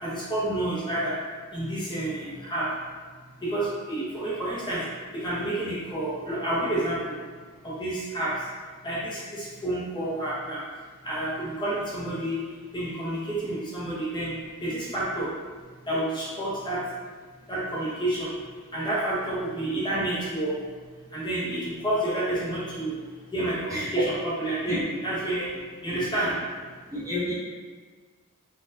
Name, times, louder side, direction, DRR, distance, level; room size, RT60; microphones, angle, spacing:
voice 1, 0.0-1.1 1.5-2.7 3.4-4.8 5.1-7.1 7.6-8.3 8.8-10.6 11.0-12.4 12.7-14.3 14.6-15.3 15.9-16.8 17.5-18.3 18.7-20.6 21.1-22.9 23.3-24.0 24.4-24.8 25.0-25.5 25.8-26.3, right 1 dB, 20° left, -8 dB, 0.7 m, -29 dB
voice 2, 23.7-24.1 24.7-24.8 26.2-26.3 26.9-27.3, equal, 15° right, -9 dB, 0.8 m, -30 dB
4.0 x 2.4 x 2.6 m, 1.5 s
head